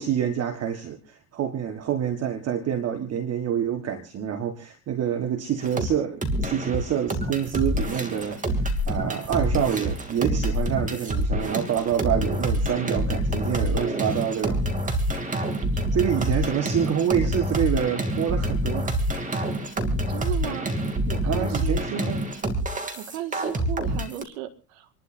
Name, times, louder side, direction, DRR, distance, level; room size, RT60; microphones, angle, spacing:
voice 1, 0.0-14.6 15.9-19.2 21.2-22.3, right 9 dB, 35° right, 7 dB, 1.6 m, -27 dB
sound 1, 5.6-5.9 6.2-24.2, right 1 dB, 20° right, 2.9 m, -27 dB
voice 2, 15.7-16.3 20.1-20.7 21.0-21.8 22.7-24.9, right 12 dB, 70° right, 7 dB, 1.9 m, -36 dB
28.0 x 12.0 x 2.7 m, 0.35 s
hypercardioid pair, 90°, 41 cm